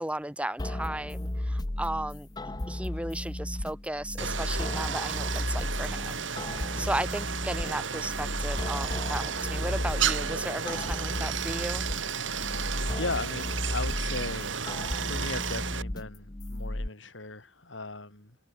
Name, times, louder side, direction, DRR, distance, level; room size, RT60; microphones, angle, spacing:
voice 1, 0.0-2.3 2.7-6.5 6.8-11.8, right 1 dB, 5° right, 1.7 m, -35 dB
sound 1, 0.6-16.9, left 1 dB, 20° left, 0.8 m, -34 dB
Stream, 4.2-15.8, right 7 dB, 90° right, 2.4 m, -33 dB
voice 2, 12.9-14.5 15.0-18.4, left 3 dB, 85° left, 4.7 m, -37 dB
head